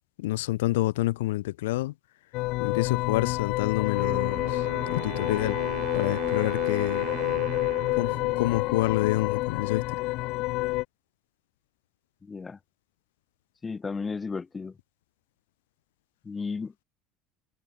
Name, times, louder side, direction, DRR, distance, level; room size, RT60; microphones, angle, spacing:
voice 1, 0.2-1.9 2.6-5.6 5.9-7.1 7.9-10.0, left 17 dB, 90° left, 0.9 m, -28 dB
sound 1, 2.3-10.8, left 21 dB, 65° left, 0.7 m, -28 dB
Wind instrument woodwind instrument, 3.9-8.9, right 18 dB, 65° right, 6.5 m, -38 dB
voice 2, 12.2-12.6 13.6-14.7 16.3-16.8, left 4 dB, 25° left, 0.6 m, -34 dB
supercardioid pair, 95°, 0 cm